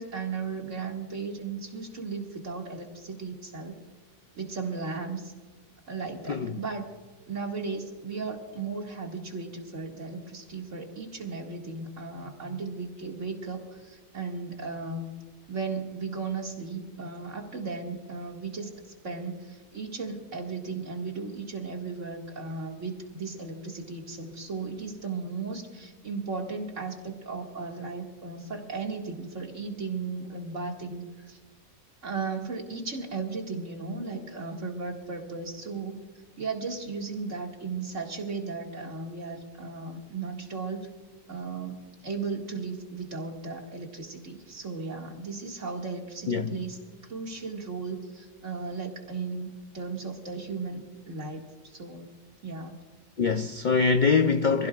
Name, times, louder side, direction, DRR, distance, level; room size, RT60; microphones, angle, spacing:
voice 1, 0.0-3.7 4.4-5.3 5.9-6.9 7.3-15.1 15.5-18.7 19.0-31.4 32.0-36.0 36.4-40.9 41.3-41.8 42.0-52.1 52.4-52.8, right 4 dB, 55° right, 2.4 m, -36 dB
voice 2, 53.2-54.7, left 5 dB, 65° left, 0.4 m, -23 dB
25.5 x 15.5 x 2.4 m
omnidirectional pair, 1.6 m